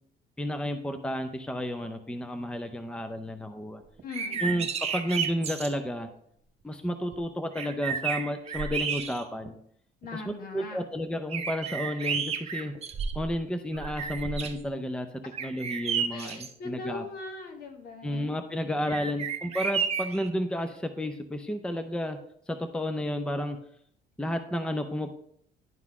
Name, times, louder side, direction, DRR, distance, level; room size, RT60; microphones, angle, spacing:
voice 1, 0.4-3.8 4.4-6.1 6.6-9.6 10.1-12.7 13.1-15.1 15.4-17.1 18.0-22.2 22.5-23.6 24.2-25.1, equal, 5° left, 8 dB, 0.6 m, -32 dB
voice 2, 4.0-4.6 10.0-10.8 15.2-15.3 16.1-18.4, left 4 dB, 60° left, 4 dB, 1.6 m, -41 dB
sound 1, 4.0-5.7 7.1-7.2 7.6-9.5 10.0-10.1 11.3-13.4 13.7-14.6 15.3-16.5 18.9-20.3, right 6 dB, 40° right, 0.8 m, -32 dB
11.0 x 4.0 x 4.7 m, 0.69 s
cardioid pair, 110°, 17 cm